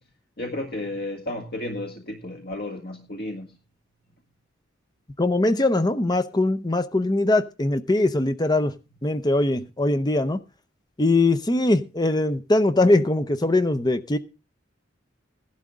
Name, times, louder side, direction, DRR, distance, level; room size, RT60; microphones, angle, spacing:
voice 1, 0.4-3.6, left 1 dB, 55° left, 1.9 m, -33 dB
voice 2, 5.2-8.7 9.0-10.4 11.0-14.2, left 2 dB, 20° left, 0.7 m, -21 dB
16.5 x 11.5 x 3.7 m
head